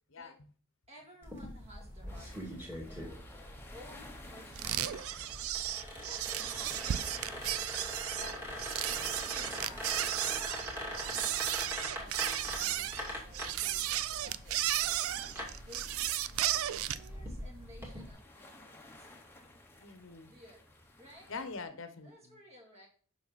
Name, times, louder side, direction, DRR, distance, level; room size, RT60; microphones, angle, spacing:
voice 1, 0.9-5.7 6.0-6.8 7.3-7.6 8.3-8.4 8.9-15.1 15.7-16.1 16.5-18.8 20.3-21.3 22.0-22.9, equal, 30° right, 0 dB, 2.2 m, -56 dB
sound 1, 1.2-18.1, equal, 10° right, 2.4 m, -43 dB
sound 2, 2.1-21.6, left 1 dB, 10° left, 1.0 m, -54 dB
sound 3, 4.6-17.1, right 12 dB, 75° right, 0.4 m, -34 dB
voice 2, 8.1-8.5 19.8-20.3 21.3-22.3, left 4 dB, 60° left, 9 dB, 1.0 m, -44 dB
7.4 x 5.9 x 4.2 m, 0.43 s
head